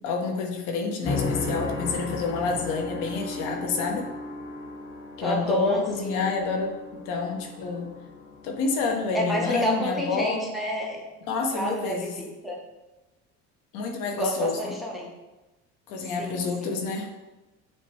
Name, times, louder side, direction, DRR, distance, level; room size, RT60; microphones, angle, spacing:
voice 1, 0.0-4.1 5.2-6.8 7.1-7.9 8.4-10.5 11.3-12.1 13.7-14.7 15.9-17.1, left 4 dB, 80° left, 2 dB, 0.8 m, -28 dB
sound 1, 1.0-9.5, left 3 dB, 40° left, 0.8 m, -35 dB
voice 2, 5.2-6.3 9.1-11.0 11.5-12.6 14.1-15.1 16.2-16.8, equal, ahead, -3 dB, 0.9 m, -30 dB
6.1 x 2.2 x 3.1 m, 1.1 s
supercardioid pair, 100°, 31 cm